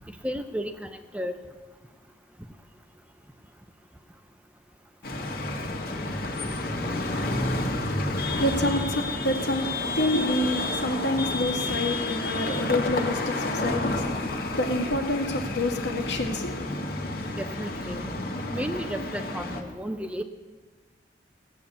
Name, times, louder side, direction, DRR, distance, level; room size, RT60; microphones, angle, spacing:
voice 1, 0.2-0.7 1.1-1.4 17.4-18.1 18.5-20.2, equal, 5° right, 0.6 m, -32 dB
sound 1, 5.0-19.6, left 2 dB, 55° left, 1.7 m, -30 dB
voice 2, 8.3-16.7, left 1 dB, 75° left, 2.0 m, -28 dB
17.0 x 8.8 x 7.1 m
head